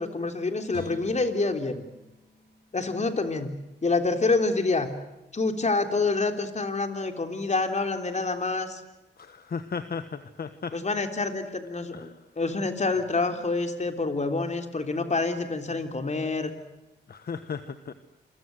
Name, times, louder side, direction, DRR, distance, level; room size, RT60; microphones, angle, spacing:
voice 1, 0.0-1.8 2.7-3.5 3.8-4.9 5.3-8.8 10.7-16.5, left 3 dB, 40° left, 6 dB, 3.6 m, -27 dB
Guitar, 0.7-3.9 4.3-4.4, left 3 dB, 75° left, 6.3 m, -49 dB
voice 2, 9.2-10.7 11.9-12.1 17.1-17.9, left 5 dB, 60° left, 10 dB, 1.4 m, -35 dB
28.5 x 23.5 x 8.0 m, 0.98 s
cardioid pair, 80°, 18 cm